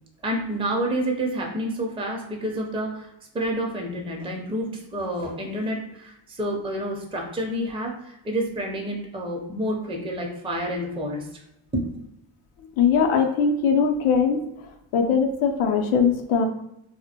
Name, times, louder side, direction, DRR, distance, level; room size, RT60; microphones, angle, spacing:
voice 1, 0.2-11.3 11.7-12.1, right 1 dB, 10° right, 0 dB, 0.5 m, -29 dB
voice 2, 12.8-14.4 14.9-16.5, left 6 dB, 80° left, 4 dB, 0.6 m, -20 dB
2.1 x 2.1 x 2.8 m, 0.84 s
supercardioid pair, 50°, 50 cm